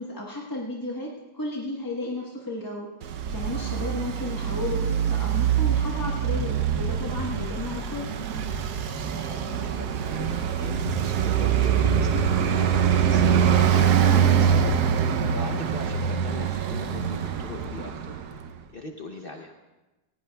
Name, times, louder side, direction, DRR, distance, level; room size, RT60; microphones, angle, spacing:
voice 1, 0.0-2.9 3.3-8.1, left 2 dB, 15° left, -3 dB, 0.9 m, -33 dB
Traffic noise roadway noise, 3.0-18.5, right 8 dB, 70° right, 1.2 m, -24 dB
voice 2, 8.8-14.7 15.3-18.1 18.7-19.6, left 3 dB, 55° left, 3 dB, 0.6 m, -39 dB
18.5 x 16.5 x 2.3 m, 1.1 s
omnidirectional pair, 2.0 m